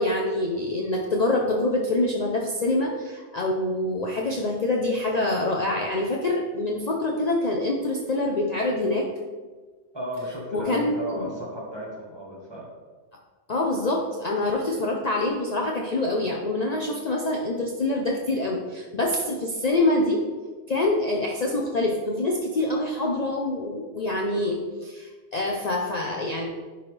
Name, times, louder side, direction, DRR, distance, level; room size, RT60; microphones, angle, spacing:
voice 1, 0.0-9.1 10.5-11.3 13.5-20.2 20.7-26.5, left 2 dB, 45° left, 0 dB, 0.6 m, -25 dB
voice 2, 9.9-12.7, right 1 dB, 25° right, -4 dB, 1.5 m, -34 dB
10.5 x 3.9 x 3.3 m, 1.4 s
omnidirectional pair, 1.2 m